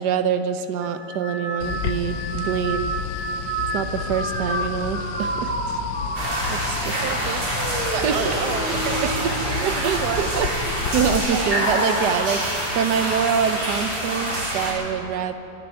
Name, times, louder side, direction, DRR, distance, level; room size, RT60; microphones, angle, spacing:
voice 1, 0.0-3.0 3.7-5.8 6.5-7.0 8.0-8.4 8.7-9.1 9.6-12.4 12.7-15.3, right 7 dB, 65° right, 10 dB, 1.1 m, -25 dB
sound 1, 0.8-10.4 10.9-11.4 12.4-12.8, right 2 dB, 10° right, 0.6 m, -31 dB
sound 2, 1.6-11.2, left 7 dB, 70° left, 1.2 m, -31 dB
sound 3, 6.2-14.7, right 1 dB, 45° right, 3.3 m, -26 dB
voice 2, 6.9-7.5 7.8-10.3, right 10 dB, 90° right, 11 dB, 0.9 m, -31 dB
12.0 x 11.0 x 9.8 m, 2.9 s
omnidirectional pair, 2.4 m